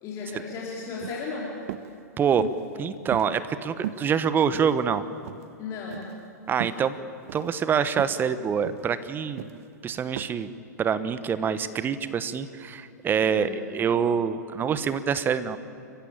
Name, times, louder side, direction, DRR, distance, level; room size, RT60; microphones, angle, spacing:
voice 1, 0.0-1.6 5.6-6.1 13.2-13.5, left 4 dB, 35° left, -3 dB, 4.1 m, -35 dB
sound 1, 0.9-1.2 1.7-1.9 2.4-2.7 3.1-3.6 3.8-4.1 4.5-5.0 5.2-5.5 5.9-6.1 6.6-6.8 7.3-7.5 8.0-8.2 8.6-8.9 9.4-9.6 10.2-10.3, right 12 dB, 50° right, 0.8 m, -36 dB
voice 2, 2.8-5.0 6.5-7.0 7.3-9.5 9.8-10.5 10.8-15.6, right 7 dB, 20° right, 14 dB, 1.1 m, -25 dB
29.5 x 15.5 x 8.9 m, 2.7 s
figure-of-eight pair, 105°, 9 cm